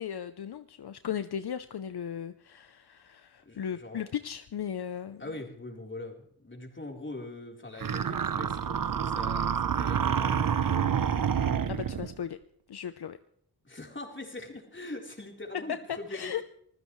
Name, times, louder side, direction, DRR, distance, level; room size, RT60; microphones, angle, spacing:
voice 1, 0.0-5.2 11.7-12.4 12.7-13.2 16.1-16.4, left 9 dB, 70° left, 11 dB, 0.7 m, -36 dB
voice 2, 3.4-4.0 5.2-11.0 13.6-16.4, left 2 dB, 30° left, 1 dB, 3.9 m, -42 dB
sound 1, 7.8-12.1, right 7 dB, 55° right, 0.8 m, -28 dB
25.5 x 15.0 x 3.2 m, 0.66 s
cardioid pair, 55°, 40 cm